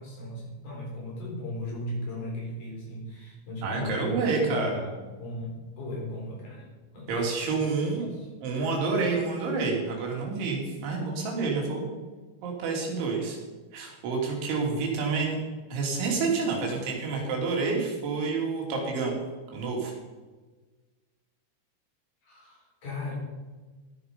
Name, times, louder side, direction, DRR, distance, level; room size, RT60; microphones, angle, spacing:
voice 1, 0.0-4.7 5.2-7.2 7.4-8.3 22.2-23.1, left 1 dB, 40° left, -3 dB, 5.6 m, -37 dB
voice 2, 3.6-4.9 7.1-8.1 8.4-11.9 12.4-13.4 13.7-15.4 15.7-19.2 19.5-19.9, right 4 dB, 75° right, -1 dB, 5.2 m, -28 dB
15.5 x 9.7 x 5.3 m, 1.3 s
omnidirectional pair, 5.5 m